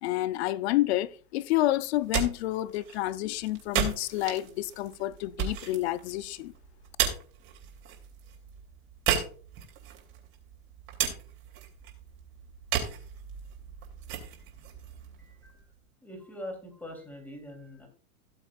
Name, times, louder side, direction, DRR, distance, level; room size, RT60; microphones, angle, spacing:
voice 1, 0.0-6.5, left 15 dB, 50° left, 0.6 m, -29 dB
sound 1, 1.8-15.8, right 9 dB, 30° right, 2.9 m, -35 dB
voice 2, 15.2-15.7 16.0-17.9, left 1 dB, 5° left, 3.1 m, -43 dB
17.5 x 7.2 x 2.4 m
supercardioid pair, 155°, 42 cm